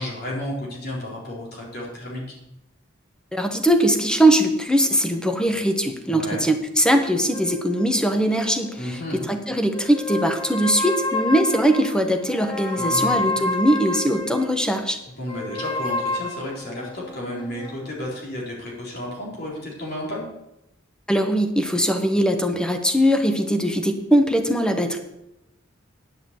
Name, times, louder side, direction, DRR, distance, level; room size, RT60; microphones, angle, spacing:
voice 1, 0.0-2.4 6.1-6.4 8.8-9.2 12.8-13.2 15.1-20.3, left 1 dB, 55° left, -4 dB, 3.7 m, -32 dB
voice 2, 3.3-9.0 9.3-15.0 21.1-25.0, right 1 dB, 5° left, 5 dB, 1.3 m, -21 dB
sound 1, 7.3-9.3 9.7-14.6 15.3-17.9, left 2 dB, 25° left, 1.7 m, -30 dB
10.5 x 7.0 x 8.0 m, 0.87 s
head